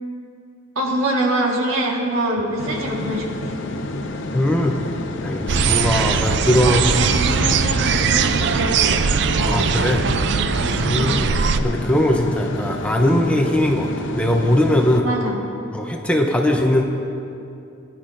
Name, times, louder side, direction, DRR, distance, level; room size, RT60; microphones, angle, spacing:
voice 1, 0.7-3.5 6.5-8.9 9.3-9.5 10.6-11.1 15.0-15.4, right 1 dB, 80° right, -1 dB, 1.5 m, -24 dB
sound 1, 2.6-15.0, left 2 dB, 60° left, 0.6 m, -29 dB
voice 2, 4.3-4.8 5.2-6.9 9.4-10.0 10.7-15.1 15.7-16.8, left 1 dB, 5° left, 1 dB, 0.6 m, -20 dB
sound 2, 5.5-11.6, right 6 dB, 55° right, 0.4 m, -20 dB
20.0 x 10.5 x 2.6 m, 2.6 s
head